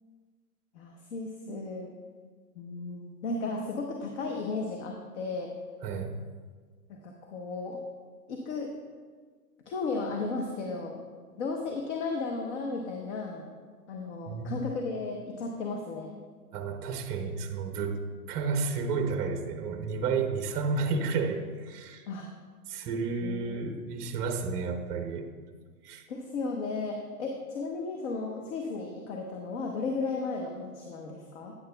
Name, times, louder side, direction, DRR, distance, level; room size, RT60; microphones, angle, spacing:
voice 1, 0.7-1.9 2.5-5.5 6.9-7.8 8.3-8.7 9.7-11.0 11.4-13.5 13.9-16.2 22.1-22.3 23.2-23.9 26.1-31.6, left 3 dB, 50° left, 2 dB, 1.0 m, -35 dB
voice 2, 5.8-6.2 14.3-14.6 16.5-18.0 18.3-22.0 22.7-25.3 25.8-26.1, right 4 dB, 20° right, 6 dB, 0.6 m, -31 dB
10.5 x 9.6 x 2.3 m, 1.5 s
hypercardioid pair, 130°, 47 cm